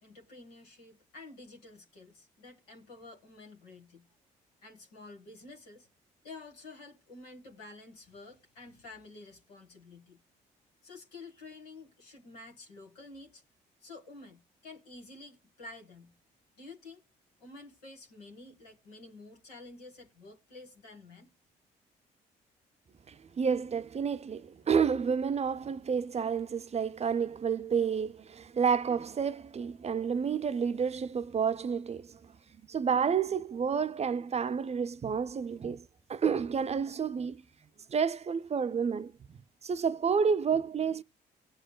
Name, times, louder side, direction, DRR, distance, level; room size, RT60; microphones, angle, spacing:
voice 1, 0.0-4.1 4.6-5.9 6.2-10.2 10.8-13.4 13.8-16.1 16.6-17.0 17.4-21.3, left 3 dB, 90° left, 1.7 m, -50 dB
voice 2, 23.1-32.2 32.7-37.4 37.9-41.0, right 6 dB, 35° right, 0.5 m, -30 dB
18.0 x 7.9 x 2.2 m
hypercardioid pair, 50°, 20 cm